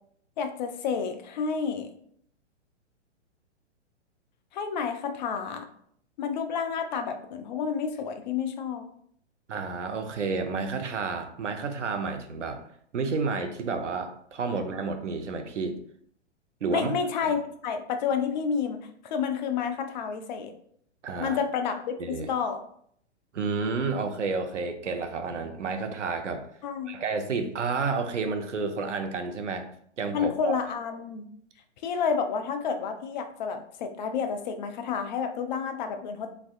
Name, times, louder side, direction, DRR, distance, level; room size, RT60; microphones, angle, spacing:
voice 1, 0.4-1.9 4.5-5.6 6.2-8.8 16.7-18.8 19.0-20.5 21.2-22.6 26.6-26.9 30.1-31.3 31.8-36.3, left 6 dB, 40° left, 6 dB, 0.5 m, -30 dB
voice 2, 9.5-12.6 12.9-15.8 16.6-16.9 17.2-17.3 21.0-21.4 22.0-22.3 23.3-26.5 26.9-29.7 30.0-30.6, right 4 dB, 80° right, 6 dB, 0.7 m, -30 dB
3.6 x 3.3 x 2.4 m, 0.64 s
figure-of-eight pair, 120°, 36 cm